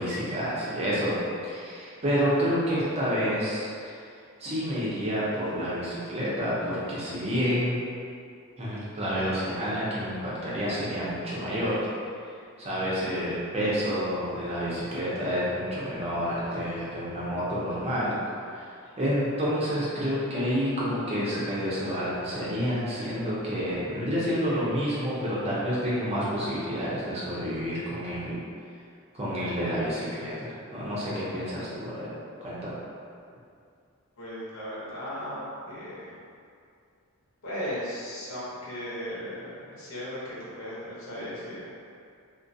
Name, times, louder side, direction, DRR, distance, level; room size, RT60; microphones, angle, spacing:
voice 1, 0.0-4.0 4.4-7.7 8.6-11.9 12.6-18.2 18.5-18.7 19.0-28.4 29.1-32.2 32.4-32.7, equal, 30° right, -8 dB, 0.6 m, -29 dB
voice 2, 34.2-36.2 37.4-41.7, equal, 70° left, -8 dB, 0.7 m, -36 dB
2.3 x 2.1 x 2.6 m, 2.4 s
head